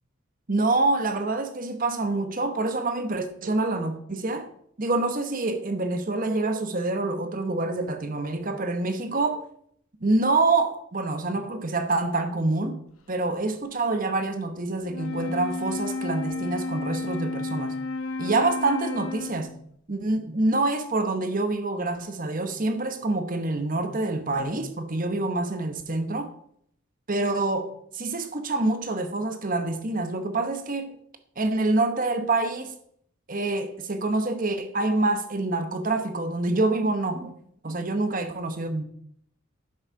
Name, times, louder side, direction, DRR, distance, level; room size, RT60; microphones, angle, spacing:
voice 1, 0.5-4.5 4.8-9.4 10.0-12.8 13.1-17.7 18.2-19.5 19.9-26.3 27.1-31.0 31.4-32.7 33.3-37.4 37.6-38.8, right 2 dB, 40° right, 1.1 m, -26 dB
Wind instrument woodwind instrument, 14.8-19.6, left 3 dB, 85° left, 1.0 m, -32 dB
11.5 x 6.5 x 4.7 m
head